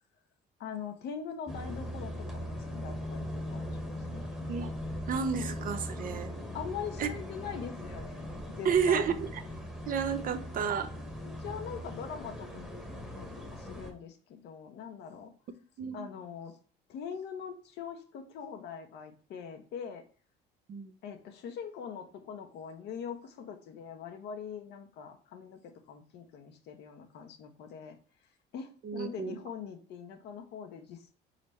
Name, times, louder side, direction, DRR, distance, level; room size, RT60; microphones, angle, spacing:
voice 1, 0.6-4.3 6.5-8.3 8.6-9.1 10.2-10.3 11.4-15.3 15.9-16.6 16.9-20.0 21.0-28.0 28.5-31.0, left 7 dB, 70° left, 5 dB, 0.9 m, -42 dB
sound 1, 1.5-13.9, left 1 dB, 5° right, 1.2 m, -39 dB
voice 2, 5.1-6.3 7.0-7.1 8.6-9.3 9.9-10.9 15.8-16.1 20.7-20.9 28.8-29.4, right 7 dB, 50° right, 9 dB, 0.8 m, -31 dB
4.1 x 4.0 x 3.2 m, 0.42 s
cardioid pair, 95°, 19 cm